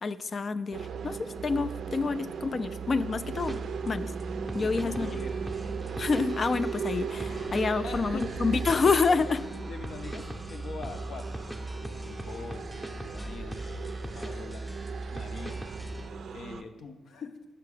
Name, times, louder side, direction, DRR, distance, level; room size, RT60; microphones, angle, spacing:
voice 1, 0.0-3.6 3.9-4.1 4.5-5.1 6.0-9.4, left 4 dB, 50° left, 13 dB, 0.3 m, -28 dB
sound 1, 0.7-16.6, right 6 dB, 70° right, 0.4 m, -38 dB
sound 2, 3.3-16.1, right 1 dB, 5° left, 0.7 m, -39 dB
voice 2, 4.6-5.4 7.7-8.7 9.1-13.6 14.1-14.6 15.1-15.6 16.3-17.4, left 4 dB, 75° left, 7 dB, 0.7 m, -43 dB
5.9 x 5.8 x 4.9 m, 1.1 s
cardioid pair, 65°, 0 cm